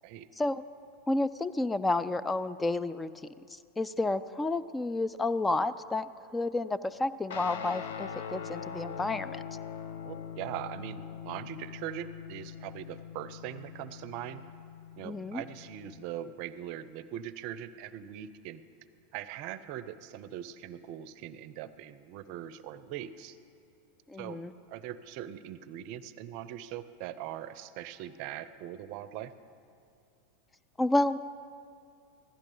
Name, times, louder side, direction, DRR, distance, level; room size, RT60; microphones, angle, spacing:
voice 1, 1.1-3.1 3.5-9.4 15.0-15.4 24.1-24.5 30.8-31.2, left 2 dB, 15° left, 14 dB, 0.3 m, -30 dB
Guitar, 7.3-16.1, left 7 dB, 75° left, 0.8 m, -42 dB
voice 2, 10.0-14.4 15.0-18.6 19.1-23.4 24.2-24.4 24.7-29.3, right 11 dB, 55° right, 14 dB, 0.5 m, -41 dB
15.5 x 12.0 x 3.8 m, 2.5 s
hypercardioid pair, 100°, 0 cm